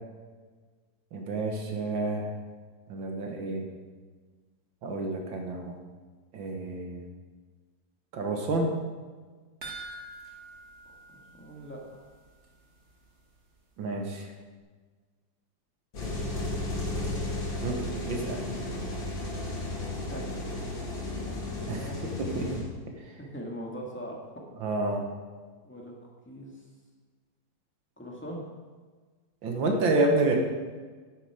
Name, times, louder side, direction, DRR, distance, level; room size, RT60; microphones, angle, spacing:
voice 1, 1.1-2.3 2.9-3.6 4.8-5.8 6.3-7.1 8.1-8.7 13.8-14.3 17.6-17.8 18.1-18.4 21.7-21.9 22.2-22.7 24.6-25.1 29.4-30.4, right 2 dB, 85° right, 3 dB, 2.1 m, -29 dB
sound 1, 9.6-12.2 12.4-12.5 13.0-13.1, right 2 dB, 40° right, 1.6 m, -45 dB
voice 2, 11.1-11.8 18.4-19.0 20.1-20.4 21.1-22.0 23.2-24.2 24.8-25.0 25.6-25.9 26.2-26.5 28.0-28.4, equal, 5° left, -1 dB, 1.7 m, -41 dB
sound 2, 15.9-22.6, left 2 dB, 85° left, 3.2 m, -34 dB
10.0 x 8.6 x 5.1 m, 1.4 s
omnidirectional pair, 2.1 m